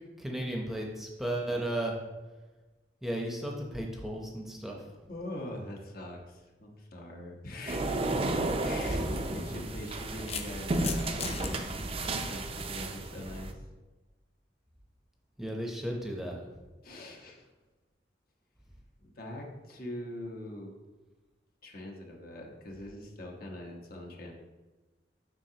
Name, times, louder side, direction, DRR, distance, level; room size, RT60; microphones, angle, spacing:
voice 1, 0.2-1.9 3.0-4.8 8.9-9.1 15.4-16.3, right 1 dB, ahead, -1 dB, 0.8 m, -34 dB
voice 2, 5.1-8.0 8.6-9.0 9.3-13.5 16.8-17.5 19.0-20.7 21.6-24.3, left 1 dB, 55° left, 0 dB, 1.2 m, -43 dB
sound 1, 7.7-13.5, right 2 dB, 35° right, 0.5 m, -33 dB
sound 2, 9.9-11.5, left 6 dB, 35° left, 0.6 m, -38 dB
7.5 x 6.0 x 2.9 m, 1.2 s
head